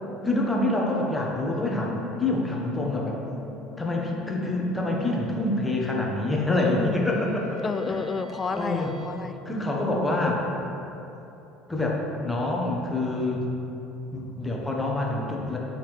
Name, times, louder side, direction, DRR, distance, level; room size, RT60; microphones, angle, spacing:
voice 1, 0.2-3.2 3.8-7.6 7.9-8.0 8.5-8.9 9.4-10.5 11.7-13.5 14.1-15.6, left 2 dB, 15° left, -2 dB, 1.2 m, -26 dB
voice 2, 2.8-3.3 6.7-7.1 7.6-9.4, left 4 dB, 30° left, 9 dB, 0.3 m, -31 dB
sound 1, 2.8-9.1, left 8 dB, 65° right, 0.7 m, -42 dB
8.2 x 4.2 x 3.3 m, 2.9 s
hypercardioid pair, 70°, 0 cm